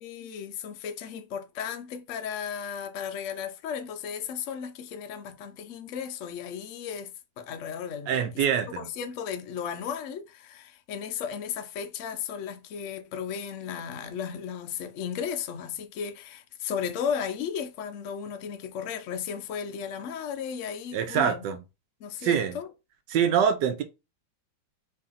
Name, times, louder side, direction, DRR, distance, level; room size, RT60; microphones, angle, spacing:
voice 1, 0.0-8.4 8.8-21.4 22.0-22.7, left 7 dB, 75° left, 0.7 m, -35 dB
voice 2, 8.1-8.9 20.9-21.6 22.2-22.6 23.1-23.8, right 8 dB, 75° right, 1.2 m, -25 dB
3.2 x 2.7 x 3.7 m
omnidirectional pair, 2.0 m